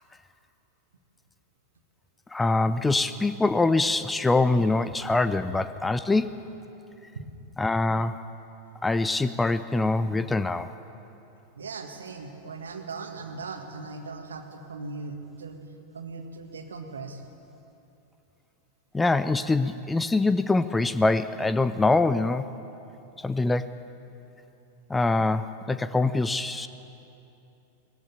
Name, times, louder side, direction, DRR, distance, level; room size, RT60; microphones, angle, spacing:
voice 1, 2.3-6.5 7.6-8.2 8.8-10.7 18.9-22.5 23.2-23.7 24.9-26.7, left 3 dB, 10° left, 13 dB, 0.5 m, -24 dB
voice 2, 11.6-15.6 15.9-17.2, right 4 dB, 70° right, 5 dB, 1.9 m, -39 dB
19.5 x 15.0 x 9.8 m, 2.9 s
figure-of-eight pair, 90°, 0 cm